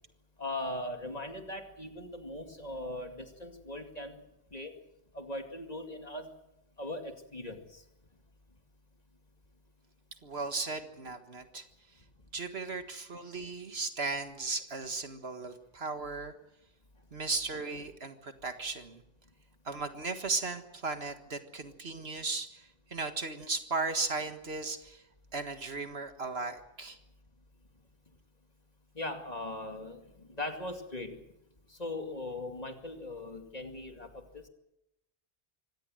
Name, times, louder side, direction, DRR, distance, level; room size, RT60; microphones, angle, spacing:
voice 1, 0.4-4.2 4.5-4.8 5.1-6.3 6.8-7.8 28.9-31.2 31.7-34.4, left 1 dB, 35° left, 5 dB, 2.5 m, -39 dB
voice 2, 10.2-11.7 12.3-16.3 17.1-19.0 19.7-25.0 25.3-27.0, right 3 dB, 60° right, 8 dB, 1.9 m, -36 dB
24.5 x 18.0 x 7.8 m, 0.86 s
omnidirectional pair, 1.2 m